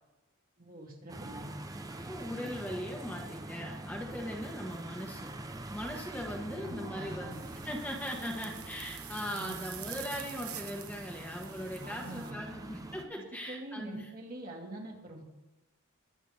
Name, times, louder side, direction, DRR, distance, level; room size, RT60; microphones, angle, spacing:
voice 1, 0.6-1.5 6.4-7.4 9.3-9.6 11.8-12.4 13.5-15.2, right 1 dB, 40° right, -1 dB, 2.7 m, -45 dB
sound 1, 1.1-13.1, right 1 dB, 15° right, 0.8 m, -44 dB
voice 2, 1.9-5.3 5.7-7.4 7.6-14.1, equal, 5° left, -1 dB, 1.5 m, -39 dB
sound 2, 7.3-12.3, right 11 dB, 90° right, 1.2 m, -47 dB
22.0 x 9.0 x 3.5 m, 1.0 s
head